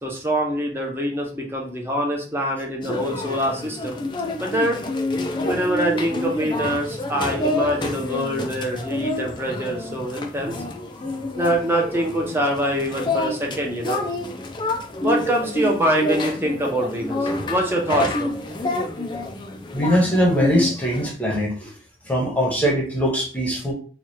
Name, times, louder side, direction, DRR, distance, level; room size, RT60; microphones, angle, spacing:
voice 1, 0.0-4.0 4.4-4.8 5.5-10.6 11.3-14.0 15.0-18.3, equal, 15° right, 0 dB, 0.8 m, -24 dB
sound 1, 2.8-21.1, left 1 dB, 25° left, 0.4 m, -28 dB
voice 2, 19.7-21.5 22.1-23.7, equal, 10° left, -2 dB, 1.0 m, -21 dB
3.0 x 2.4 x 4.3 m, 0.41 s
head